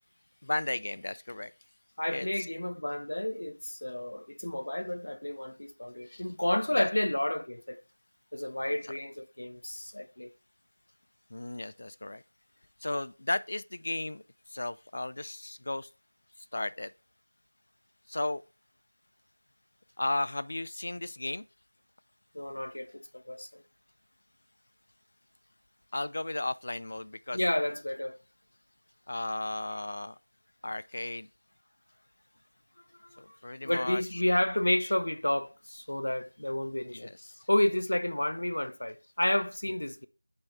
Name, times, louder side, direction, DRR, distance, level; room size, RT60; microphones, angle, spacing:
voice 1, 0.4-1.5 2.1-2.3 6.1-6.2 6.7-6.9 11.3-12.2 12.8-14.2 14.5-15.9 16.5-16.9 18.1-18.4 20.0-21.4 25.9-27.4 29.1-30.1 30.6-31.3 33.2-34.2 36.9-37.1, left 2 dB, 40° left, 0.3 m, -34 dB
voice 2, 2.0-7.8 8.3-10.3 22.3-23.6 27.3-28.2 33.1-33.4 33.6-37.1 37.5-40.1, left 1 dB, 65° left, 0.7 m, -31 dB
9.0 x 3.2 x 5.5 m
figure-of-eight pair, 175°, 0 cm